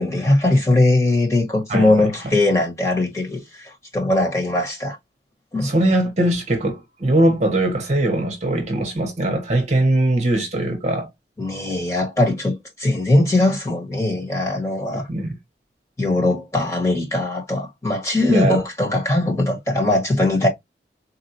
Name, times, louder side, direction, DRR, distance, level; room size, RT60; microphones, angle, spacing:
voice 1, 0.0-5.0 5.5-5.7 11.4-15.1 16.0-20.5, left 2 dB, 15° left, 1.5 m, -20 dB
voice 2, 1.7-2.1 5.6-11.1 14.9-15.3 18.3-18.6, right 1 dB, 40° right, 1.1 m, -21 dB
4.2 x 2.6 x 2.8 m
head